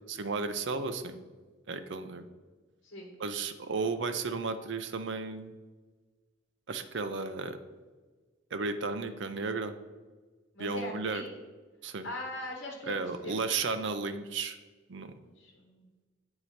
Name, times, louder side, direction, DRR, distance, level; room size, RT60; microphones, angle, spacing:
voice 1, 0.1-1.2 1.7-2.3 3.2-5.5 6.7-7.6 8.5-9.7 10.6-11.2 11.8-12.1 12.9-14.6 14.9-15.1, right 4 dB, 65° right, 8 dB, 0.6 m, -34 dB
voice 2, 10.5-11.3 12.0-13.0 13.2-13.6 15.2-15.9, left 1 dB, 65° left, -1 dB, 1.2 m, -41 dB
8.9 x 4.8 x 4.2 m, 1.3 s
head